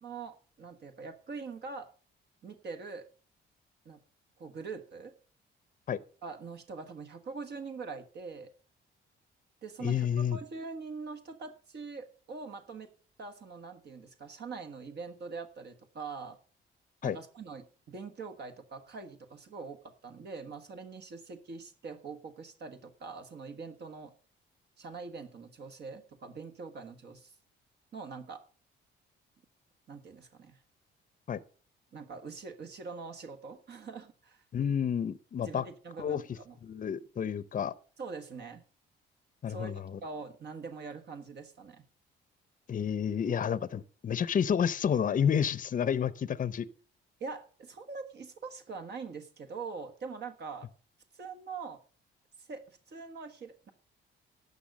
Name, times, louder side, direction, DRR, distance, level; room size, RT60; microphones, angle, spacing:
voice 1, 0.0-1.9 2.4-3.1 3.8-4.0 4.4-5.1 6.2-8.5 9.6-12.9 13.2-16.4 17.0-24.1 24.8-27.3 27.9-28.4 29.9-30.6 31.9-34.4 35.4-36.6 38.0-38.6 39.5-39.7 40.0-41.8 47.2-50.7 51.1-51.8 52.4-53.7, right 4 dB, 55° right, 1.5 m, -43 dB
voice 2, 9.8-10.4 17.0-17.2 31.3-31.4 34.5-35.6 36.0-36.2 36.6-37.7 39.4-40.0 42.7-46.7, left 8 dB, 40° left, 0.7 m, -30 dB
11.5 x 6.9 x 6.4 m
cardioid pair, 90°, 20 cm